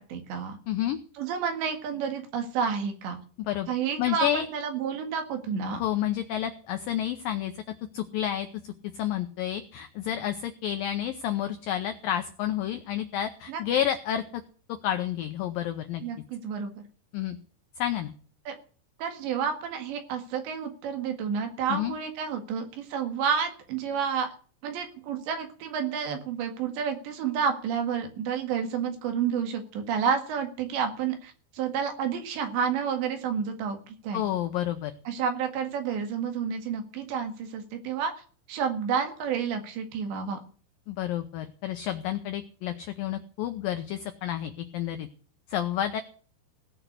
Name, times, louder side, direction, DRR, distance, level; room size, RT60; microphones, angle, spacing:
voice 1, 0.0-0.6 1.2-3.2 3.7-5.8 13.5-13.6 16.0-16.8 18.5-18.6 19.0-24.3 24.6-34.2 35.1-38.1 38.5-40.4, right 7 dB, 75° right, 6 dB, 4.1 m, -30 dB
voice 2, 0.7-1.0 3.5-3.7 4.0-4.5 5.7-7.5 7.9-14.4 14.8-16.0 17.1-17.4 17.8-18.1 21.7-22.0 34.1-34.9 40.9-45.1 45.5-46.0, left 11 dB, 85° left, 7 dB, 2.0 m, -30 dB
17.5 x 6.0 x 8.2 m, 0.44 s
omnidirectional pair, 5.1 m